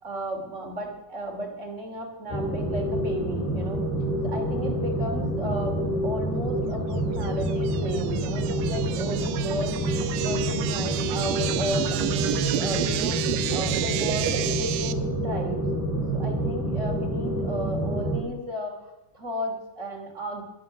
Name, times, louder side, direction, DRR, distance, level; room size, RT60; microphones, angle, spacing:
voice 1, 0.0-3.8 4.2-9.8 10.2-13.2 13.5-15.6 16.1-18.7 19.1-20.4, right 1 dB, 20° right, 2 dB, 2.6 m, -34 dB
sound 1, 2.3-18.2, right 1 dB, 70° left, 9.1 m, -27 dB
sound 2, 7.2-14.9, right 13 dB, 80° right, 2.3 m, -31 dB
23.0 x 8.1 x 6.3 m, 1.0 s
omnidirectional pair, 4.1 m